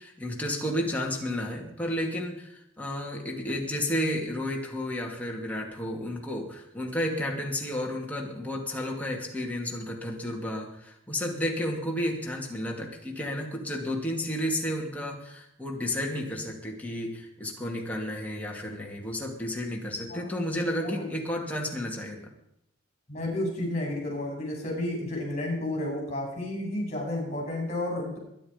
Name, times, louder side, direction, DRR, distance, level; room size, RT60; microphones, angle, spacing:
voice 1, 0.0-22.2, left 1 dB, 5° left, -1 dB, 2.8 m, -32 dB
voice 2, 23.1-28.2, left 1 dB, 30° left, -1 dB, 7.7 m, -31 dB
22.5 x 10.5 x 5.4 m, 0.79 s
head